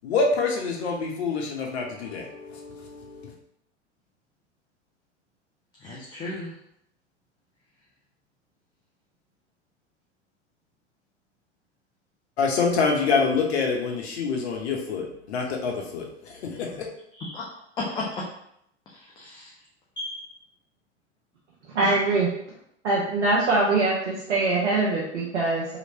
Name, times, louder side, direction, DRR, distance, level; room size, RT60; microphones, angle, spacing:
voice 1, 0.0-3.3 12.4-16.9, left 4 dB, 60° left, 0 dB, 0.9 m, -26 dB
voice 2, 5.8-6.5 17.2-17.4 17.8-18.0 19.0-19.5 20.0-20.3, left 3 dB, 15° left, -4 dB, 0.3 m, -34 dB
voice 3, 21.7-22.3 22.8-25.7, right 3 dB, 70° right, -5 dB, 0.8 m, -23 dB
2.9 x 2.9 x 2.8 m, 0.74 s
figure-of-eight pair, 90°, 36 cm